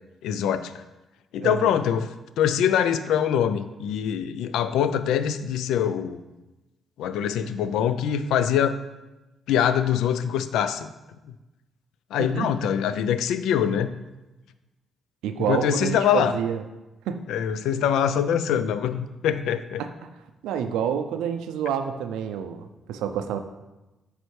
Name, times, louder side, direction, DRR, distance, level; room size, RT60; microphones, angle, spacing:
voice 1, 0.2-0.7 1.3-2.1 2.4-6.2 7.0-8.8 9.5-10.9 12.1-13.9 15.5-16.3 17.3-19.8, left 9 dB, 80° left, 12 dB, 0.3 m, -24 dB
voice 2, 1.4-1.7 12.2-12.5 15.2-16.6 17.1-17.2 19.8-19.9 20.4-23.4, right 8 dB, 80° right, 8 dB, 0.4 m, -28 dB
9.4 x 3.3 x 3.2 m, 1.1 s
hypercardioid pair, 50°, 0 cm